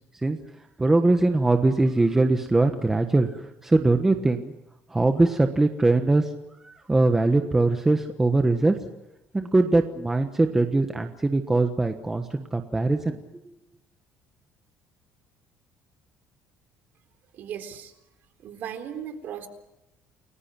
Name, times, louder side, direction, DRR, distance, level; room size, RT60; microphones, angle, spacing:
voice 1, 0.8-4.5 4.9-6.3 6.6-8.8 9.3-13.2, right 2 dB, 10° right, 6 dB, 1.3 m, -22 dB
voice 2, 17.3-17.9 18.4-19.5, right 8 dB, 45° right, 8 dB, 3.9 m, -36 dB
30.0 x 21.0 x 6.1 m, 0.90 s
cardioid pair, 170°, 4 cm